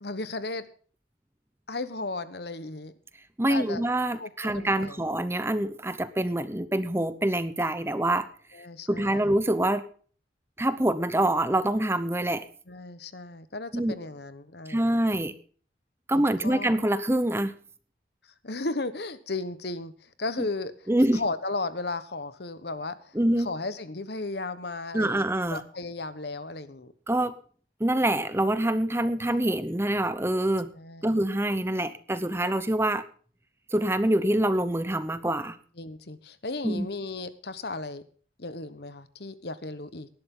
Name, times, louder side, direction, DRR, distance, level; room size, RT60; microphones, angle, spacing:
voice 1, 0.0-0.7 1.7-2.9 3.5-3.8 4.2-5.0 8.5-9.3 12.7-15.0 16.1-16.8 18.4-19.9 20.2-20.7 21.1-25.2 25.5-26.9 29.0-29.1 30.7-31.2 35.8-38.0 38.4-40.1, left 3 dB, 60° left, 13 dB, 1.2 m, -35 dB
voice 2, 3.4-8.3 8.9-9.8 10.6-12.4 13.7-14.0 14.7-15.3 16.1-17.5 20.9-21.2 23.1-23.5 24.9-25.6 27.1-27.3 27.8-30.7 31.0-33.0 33.7-35.6 36.6-36.9, right 1 dB, 15° right, 13 dB, 0.8 m, -25 dB
18.5 x 12.0 x 3.8 m, 0.43 s
head